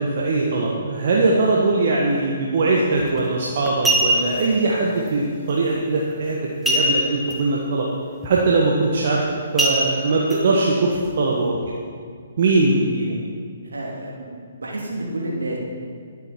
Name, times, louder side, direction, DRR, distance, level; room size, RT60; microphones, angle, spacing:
voice 1, 0.0-6.4 6.6-7.8 8.2-9.2 9.5-11.6 12.4-13.2, right 3 dB, 45° right, -3 dB, 1.5 m, -21 dB
sound 1, 3.0-3.2 3.7-4.4 6.6-7.3 7.7-7.8 8.2-8.5 9.6-10.4 10.9-11.0, right 1 dB, 5° right, 1.5 m, -21 dB
voice 2, 13.7-15.6, right 1 dB, 65° right, -2 dB, 3.1 m, -30 dB
21.0 x 8.0 x 4.5 m, 2.1 s
figure-of-eight pair, 125°, 0 cm